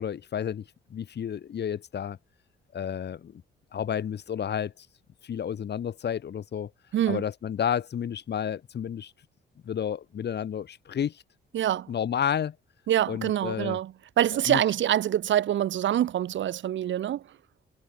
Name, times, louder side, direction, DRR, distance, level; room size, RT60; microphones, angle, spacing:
voice 1, 0.0-2.2 2.7-3.4 3.7-4.9 5.2-6.7 7.1-9.1 9.6-11.2 11.9-12.5 13.1-13.8 14.5-14.6, left 8 dB, 60° left, 6.7 m, -31 dB
voice 2, 6.9-7.2 11.5-11.9 12.9-17.2, right 11 dB, 70° right, 2.9 m, -25 dB
cardioid pair, 90°, 20 cm